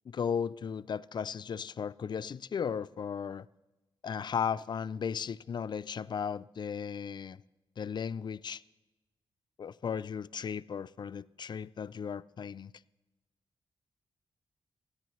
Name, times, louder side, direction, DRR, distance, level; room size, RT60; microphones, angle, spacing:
voice 1, 0.1-3.5 4.0-7.4 7.8-8.6 9.6-12.7, left 7 dB, 50° left, 0.4 m, -35 dB
27.5 x 9.7 x 3.1 m
cardioid pair, 75°, 10 cm